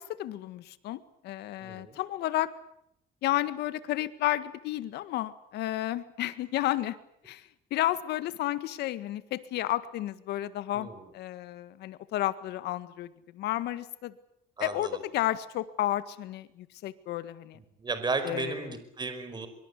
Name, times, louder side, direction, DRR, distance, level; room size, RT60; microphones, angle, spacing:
voice 1, 0.0-2.5 3.2-7.0 7.2-14.1 14.6-17.6 18.2-18.8, left 14 dB, 80° left, 13 dB, 1.8 m, -32 dB
voice 2, 1.6-2.0 10.7-11.0 14.6-15.0 17.8-19.5, right 4 dB, 25° right, 9 dB, 5.0 m, -34 dB
25.0 x 24.0 x 8.4 m, 0.74 s
cardioid pair, 110°, 17 cm